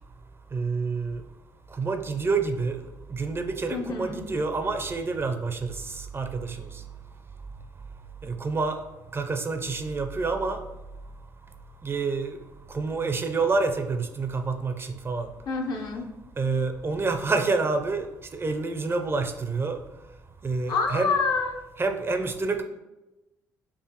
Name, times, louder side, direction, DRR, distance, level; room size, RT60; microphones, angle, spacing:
voice 1, 0.5-1.2 1.7-2.8 3.1-6.8 8.2-8.8 9.1-10.6 11.8-12.4 12.7-15.3 16.4-19.8 20.4-21.2 21.8-22.6, right 4 dB, 30° right, 7 dB, 0.5 m, -28 dB
voice 2, 3.7-4.2 15.5-16.1 20.7-21.6, left 4 dB, 55° left, 3 dB, 0.7 m, -27 dB
4.7 x 2.5 x 2.9 m, 1.0 s
hypercardioid pair, 55°, 8 cm